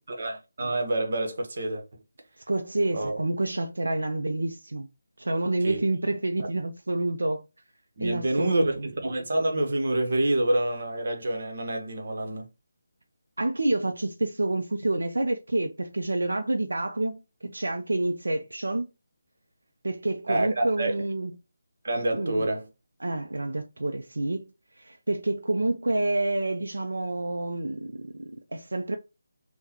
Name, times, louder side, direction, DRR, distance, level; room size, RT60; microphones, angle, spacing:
voice 1, 0.1-1.8 2.9-3.2 5.6-5.8 8.0-12.5 20.3-21.0 21.8-22.7, right 1 dB, 55° right, 0.9 m, -27 dB
voice 2, 2.4-4.9 5.2-7.4 8.0-8.9 13.4-18.9 19.8-21.3 22.1-22.5 23.0-24.5 24.8-29.0, right 2 dB, 85° right, 0.4 m, -28 dB
3.6 x 2.2 x 2.8 m
figure-of-eight pair, 160°, 0 cm